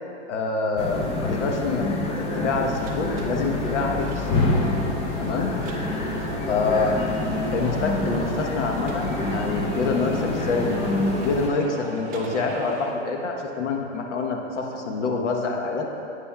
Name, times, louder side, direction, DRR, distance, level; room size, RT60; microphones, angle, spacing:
voice 1, 0.3-1.9 2.1-4.4 5.2-5.5 6.5-7.0 7.5-10.7 11.2-15.9, left 3 dB, 80° left, 2 dB, 1.2 m, -26 dB
sound 1, 0.8-11.5, left 2 dB, 15° left, 0.5 m, -27 dB
sound 2, 2.7-12.9, right 3 dB, 25° right, 0.8 m, -40 dB
11.0 x 8.2 x 2.3 m, 2.9 s
hypercardioid pair, 135°, 35 cm